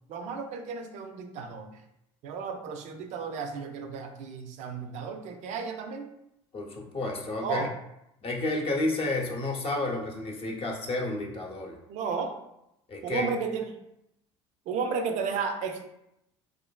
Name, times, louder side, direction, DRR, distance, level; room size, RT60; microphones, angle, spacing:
voice 1, 0.1-1.8 2.2-6.1 7.4-7.7 11.9-12.4 13.0-13.8 14.7-15.8, right 5 dB, 60° right, 6 dB, 0.4 m, -33 dB
voice 2, 6.5-7.7 8.2-11.8 12.9-13.3, left 2 dB, 45° left, 0 dB, 0.7 m, -31 dB
2.7 x 2.5 x 2.2 m, 0.82 s
supercardioid pair, 75°, 14 cm